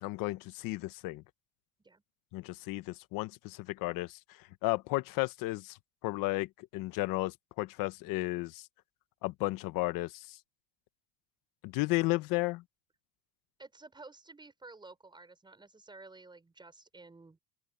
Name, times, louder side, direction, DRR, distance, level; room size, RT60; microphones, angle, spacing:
voice 1, 0.0-1.2 2.3-5.8 6.0-8.6 9.2-10.4 11.6-12.6, left 21 dB, 60° left, 1.1 m, -33 dB
voice 2, 13.6-17.4, right 3 dB, 10° right, 6.0 m, -52 dB
open air
cardioid pair, 145°, 37 cm